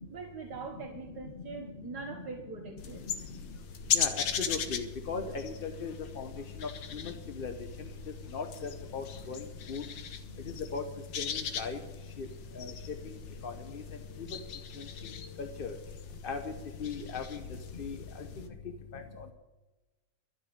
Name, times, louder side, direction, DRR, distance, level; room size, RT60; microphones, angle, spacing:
voice 1, 0.1-3.0, right 4 dB, 60° right, 1 dB, 1.9 m, -42 dB
sound 1, 2.8-18.5, left 7 dB, 80° left, 1.7 m, -39 dB
voice 2, 3.9-6.3 6.6-7.5 7.8-7.9 8.3-9.8 10.5-10.8 11.2-11.8 12.2-12.3 12.5-12.7 13.4-13.8 14.8-14.9 15.4-15.7 16.2-16.5 16.8-17.4 17.8-18.3 18.9-19.2, left 5 dB, 45° left, 6 dB, 0.7 m, -38 dB
12.5 x 7.1 x 9.4 m, 1.1 s
omnidirectional pair, 2.0 m